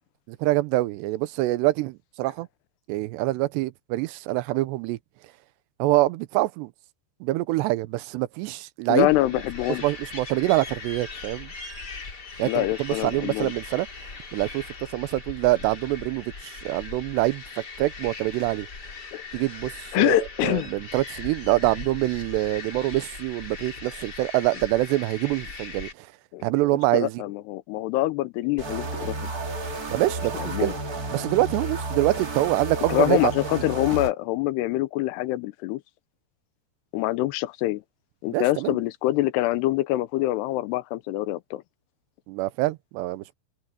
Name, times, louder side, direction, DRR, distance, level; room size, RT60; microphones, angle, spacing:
voice 1, 0.3-2.5 2.9-5.0 5.8-6.7 7.2-9.1 9.8-11.5 12.4-13.9 14.3-14.6 14.9-17.4 17.8-18.7 19.3-20.2 20.4-26.1 26.4-27.2 29.9-30.7 31.1-33.3 38.3-38.8 42.3-43.3, right 18 dB, 85° right, 2.9 m, -25 dB
voice 2, 8.9-9.8 12.4-13.5 19.1-19.4 19.9-20.7 26.3-26.4 26.9-29.3 30.4-30.7 32.9-35.8 36.9-37.8 38.2-41.6, left 16 dB, 80° left, 2.7 m, -25 dB
sound 1, 9.0-25.9, left 4 dB, 30° left, 2.6 m, -40 dB
sound 2, 28.6-34.1, right 2 dB, 30° right, 1.8 m, -32 dB
omnidirectional pair, 4.9 m